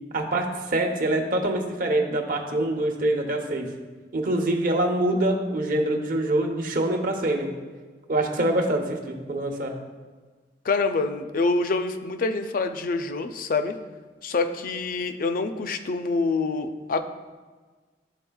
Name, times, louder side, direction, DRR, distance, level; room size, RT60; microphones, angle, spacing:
voice 1, 0.1-3.7 4.1-7.5 8.1-9.7, right 1 dB, 50° right, 2 dB, 0.8 m, -25 dB
voice 2, 10.6-13.8 14.2-17.0, left 3 dB, 50° left, 9 dB, 0.4 m, -26 dB
12.0 x 4.1 x 2.3 m, 1.4 s
head